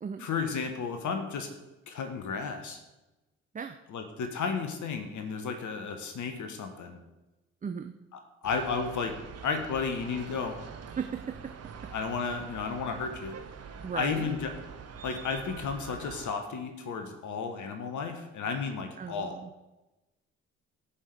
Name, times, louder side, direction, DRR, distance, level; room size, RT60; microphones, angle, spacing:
voice 1, 0.2-1.5 1.9-2.8 3.9-7.0 8.4-9.1 9.4-10.6 11.9-13.4 13.9-14.5 15.0-19.3, left 5 dB, 50° left, 6 dB, 1.4 m, -33 dB
voice 2, 7.6-7.9 11.0-11.6 11.8-11.9 13.8-14.3 19.0-19.5, right 6 dB, 20° right, 7 dB, 0.6 m, -36 dB
sound 1, 8.4-16.3, right 6 dB, 40° right, 1.1 m, -45 dB
16.5 x 5.6 x 3.5 m, 1.0 s
figure-of-eight pair, 45°, 38 cm